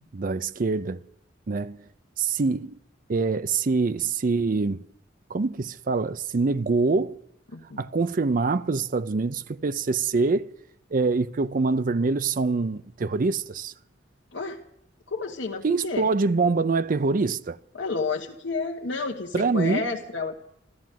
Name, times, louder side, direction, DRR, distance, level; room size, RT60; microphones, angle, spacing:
voice 1, 0.1-1.0 1.5-1.8 2.2-2.8 3.1-4.9 5.3-7.2 7.8-10.5 10.9-13.7 15.6-17.6 19.3-19.9, right 4 dB, 45° right, 0.5 m, -25 dB
voice 2, 7.5-7.8 14.3-14.6 15.1-16.1 17.7-20.3, left 4 dB, 75° left, 1.2 m, -30 dB
14.0 x 13.5 x 7.5 m
head